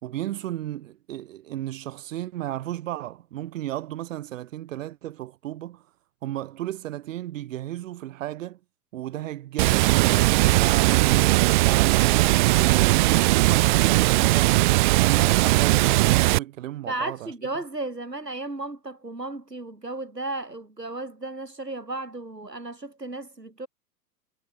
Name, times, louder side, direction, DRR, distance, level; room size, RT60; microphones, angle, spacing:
voice 1, 0.0-5.9 6.2-8.6 8.9-12.3 12.6-17.3, right 13 dB, 50° right, 6.1 m, -34 dB
Water, 9.6-16.4, right 21 dB, 30° right, 0.7 m, -19 dB
voice 2, 16.8-23.7, right 2 dB, 85° right, 6.9 m, -34 dB
figure-of-eight pair, 100°, 47 cm